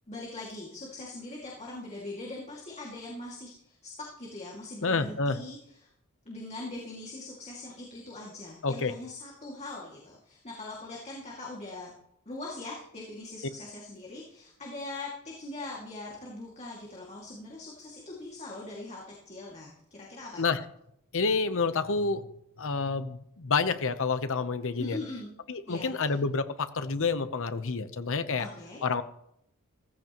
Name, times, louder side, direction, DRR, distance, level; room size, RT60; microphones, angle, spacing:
voice 1, 0.1-5.9 6.3-11.9 12.3-20.4 24.8-25.3 25.7-25.9 28.4-28.8, left 2 dB, 30° left, -3 dB, 2.3 m, -41 dB
voice 2, 4.8-5.4 8.6-8.9 20.4-20.6 21.1-22.3 22.6-25.0 25.5-28.5 28.8-29.0, left 4 dB, 65° left, 11 dB, 0.9 m, -28 dB
15.5 x 14.5 x 3.0 m, 0.76 s
head